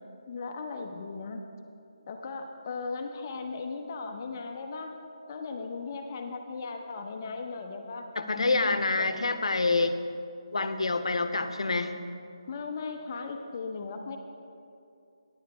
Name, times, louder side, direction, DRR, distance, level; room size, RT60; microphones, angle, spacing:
voice 1, 0.3-1.4 2.1-4.9 5.3-8.0 8.9-9.1 12.5-14.2, left 4 dB, 35° left, 4 dB, 0.7 m, -37 dB
voice 2, 8.2-10.0 10.5-12.0, left 3 dB, 80° left, 9 dB, 0.7 m, -27 dB
10.5 x 7.2 x 4.8 m, 2.5 s
figure-of-eight pair, 165°, 3 cm